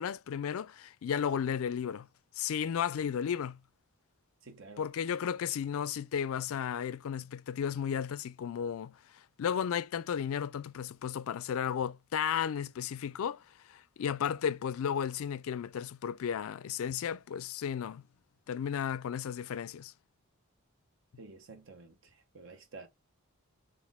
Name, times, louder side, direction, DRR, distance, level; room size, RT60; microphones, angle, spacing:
voice 1, 0.0-2.1 2.4-3.6 4.8-8.9 9.4-13.4 13.7-18.0 18.5-19.9, left 8 dB, 65° left, 0.3 m, -34 dB
voice 2, 4.4-4.9 21.2-21.9 22.3-22.9, right 3 dB, 55° right, 0.9 m, -49 dB
4.3 x 2.5 x 3.5 m
head